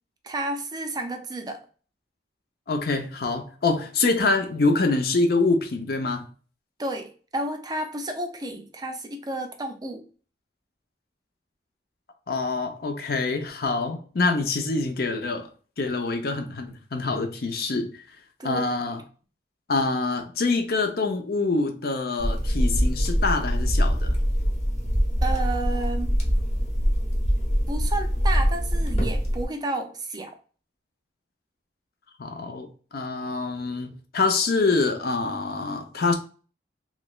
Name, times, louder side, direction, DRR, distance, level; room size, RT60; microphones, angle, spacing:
voice 1, 0.2-1.6 6.8-10.0 18.4-18.6 25.2-26.2 27.7-30.3, right 2 dB, 20° right, 0.5 m, -31 dB
voice 2, 2.7-6.2 12.3-15.5 15.8-17.9 18.4-19.0 19.7-24.1 32.2-36.1, left 3 dB, 55° left, 0.6 m, -25 dB
sound 1, 22.2-29.5, equal, 40° left, 1.1 m, -23 dB
3.2 x 3.1 x 2.3 m
head